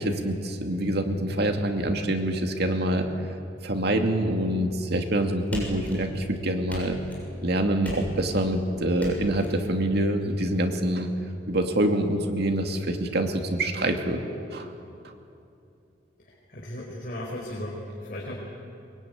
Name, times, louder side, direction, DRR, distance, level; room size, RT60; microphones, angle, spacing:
voice 1, 0.0-3.1 3.6-7.0 7.4-11.1 11.5-14.2 14.5-14.7, right 1 dB, 60° right, 4 dB, 2.4 m, -25 dB
sound 1, 5.5-6.3 6.7-7.3 7.8-8.5 9.0-9.5, equal, 10° left, 7.1 m, -38 dB
voice 2, 16.3-18.3, left 1 dB, 50° left, -2 dB, 4.4 m, -36 dB
23.0 x 23.0 x 9.6 m, 2.7 s
head